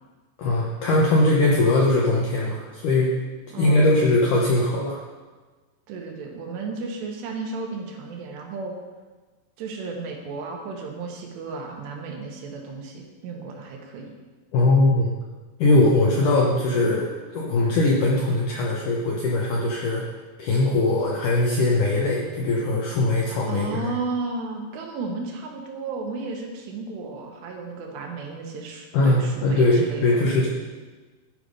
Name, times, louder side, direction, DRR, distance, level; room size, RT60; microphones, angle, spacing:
voice 1, 0.4-3.2 3.6-5.0 14.5-15.1 15.6-20.0 20.4-23.9 28.9-30.5, left 2 dB, 75° left, -3 dB, 1.9 m, -21 dB
voice 2, 3.5-4.1 5.9-8.7 9.6-14.1 23.5-30.2, right 4 dB, 85° right, 1 dB, 3.4 m, -33 dB
12.0 x 5.0 x 5.2 m, 1.3 s
omnidirectional pair, 4.8 m